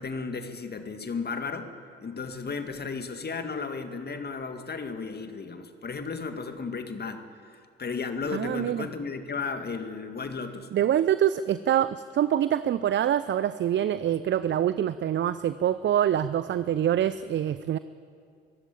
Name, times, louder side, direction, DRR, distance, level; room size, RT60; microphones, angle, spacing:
voice 1, 0.0-1.7 2.0-10.7, left 4 dB, 30° left, 7 dB, 2.1 m, -34 dB
voice 2, 8.3-8.9 10.7-17.8, right 10 dB, 35° right, 15 dB, 0.6 m, -25 dB
22.0 x 15.5 x 8.9 m, 2.3 s
figure-of-eight pair, 50°, 31 cm